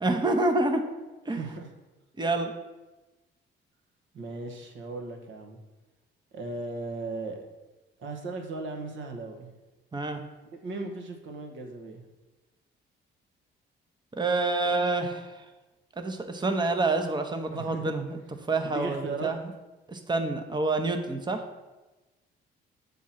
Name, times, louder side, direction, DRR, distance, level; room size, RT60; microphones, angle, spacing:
voice 1, 0.0-0.8 1.3-1.4 2.2-2.5 9.9-10.2 14.1-15.4 16.0-18.2 18.5-19.4 19.9-21.4, right 2 dB, 20° right, 6 dB, 0.8 m, -27 dB
voice 2, 1.3-1.7 4.1-5.6 6.3-7.4 8.0-9.5 10.6-12.0 17.5-17.9 18.6-19.3, right 3 dB, 75° right, 4 dB, 1.2 m, -37 dB
7.3 x 3.8 x 5.7 m, 1.1 s
cardioid pair, 90°, 20 cm